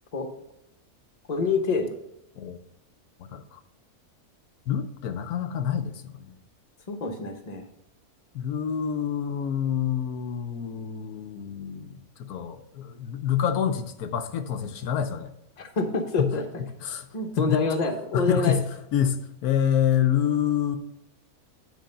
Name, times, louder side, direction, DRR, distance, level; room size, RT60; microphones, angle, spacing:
voice 1, 1.3-1.9 6.9-7.6 15.6-16.4 17.1-18.6, left 3 dB, 30° left, 4 dB, 1.0 m, -26 dB
voice 2, 4.7-6.3 8.3-15.3 16.2-16.3 16.8-17.1 17.4-17.6 18.1-18.7 18.9-20.8, left 9 dB, 80° left, 7 dB, 1.2 m, -27 dB
9.2 x 4.6 x 5.4 m, 0.82 s
omnidirectional pair, 1.6 m